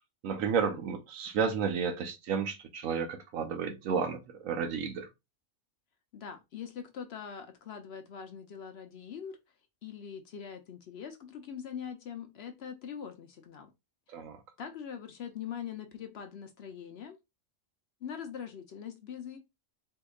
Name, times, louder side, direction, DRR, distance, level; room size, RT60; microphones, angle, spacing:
voice 1, 0.2-5.1 14.1-14.4, right 6 dB, 80° right, 1.1 m, -32 dB
voice 2, 6.1-9.4 9.8-13.7 14.1-14.2 14.6-17.2 18.0-19.4, left 8 dB, 65° left, 0.7 m, -42 dB
4.2 x 2.8 x 2.3 m
omnidirectional pair, 1.4 m